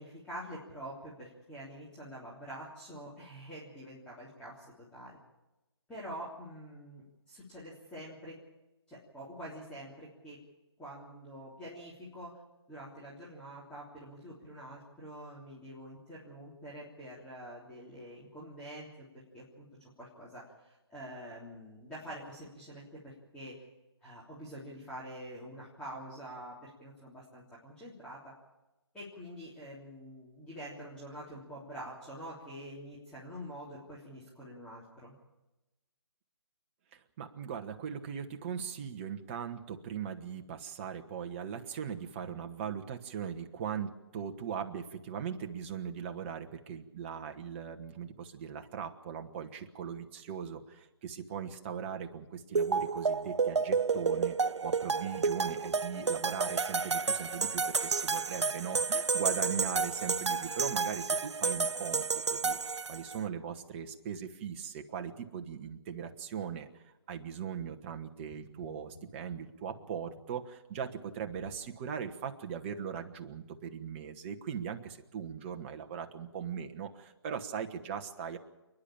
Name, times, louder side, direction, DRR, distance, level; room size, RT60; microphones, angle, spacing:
voice 1, 0.0-4.6 4.9-5.2 5.9-8.4 8.9-10.4 10.8-12.3 12.7-18.9 19.1-19.7 20.0-23.5 24.0-28.3 28.9-35.1, equal, 5° left, -8 dB, 3.5 m, -46 dB
voice 2, 36.9-62.6 62.9-78.4, right 7 dB, 25° right, 5 dB, 1.4 m, -39 dB
sound 1, 52.6-63.2, right 5 dB, 80° right, 0.7 m, -31 dB
sound 2, 68.2-71.7 72.1-72.3, left 2 dB, 50° left, 7.1 m, -56 dB
29.0 x 10.5 x 8.8 m, 1.0 s
figure-of-eight pair, 150°, 15 cm